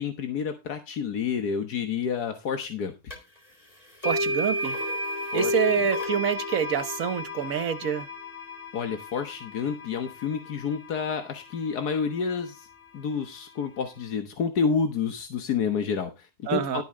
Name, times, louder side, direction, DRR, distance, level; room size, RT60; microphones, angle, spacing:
voice 1, 0.0-3.1 5.3-5.6 8.7-12.7 12.9-16.8, left 6 dB, 90° left, 1.8 m, -29 dB
sound 1, 3.1-3.2 4.0-12.1, left 1 dB, 25° left, 3.9 m, -32 dB
voice 2, 4.0-4.8 5.3-8.1 16.5-16.8, right 8 dB, 65° right, 1.4 m, -27 dB
12.5 x 8.7 x 3.7 m
omnidirectional pair, 1.6 m